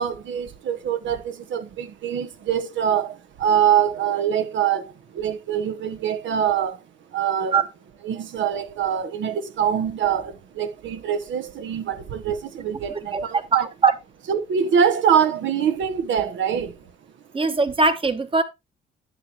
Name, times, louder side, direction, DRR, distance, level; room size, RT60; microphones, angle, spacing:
voice 1, 0.0-6.8 7.1-7.6 8.0-13.6 14.3-16.9, right 8 dB, 70° right, 1.1 m, -24 dB
voice 2, 13.1-13.4 13.8-13.9 17.3-18.4, right 4 dB, 25° right, 1.2 m, -20 dB
10.0 x 7.1 x 2.8 m
cardioid pair, 90°, 20 cm